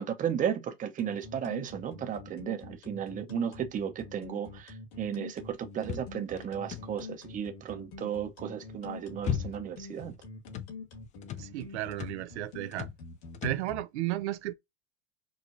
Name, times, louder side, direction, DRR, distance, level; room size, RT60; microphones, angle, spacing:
voice 1, 0.0-10.2, right 8 dB, 25° right, 0.7 m, -34 dB
sound 1, 1.0-13.8, left 3 dB, 65° left, 2.2 m, -45 dB
sound 2, 5.8-7.2 8.7-9.9 10.1-10.8 11.2-11.5 11.9-12.3 12.7-13.1 13.3-13.7, left 9 dB, 25° left, 0.3 m, -37 dB
voice 2, 11.4-12.9 13.4-14.5, right 16 dB, 85° right, 0.5 m, -34 dB
4.7 x 2.4 x 2.6 m
supercardioid pair, 125°, 33 cm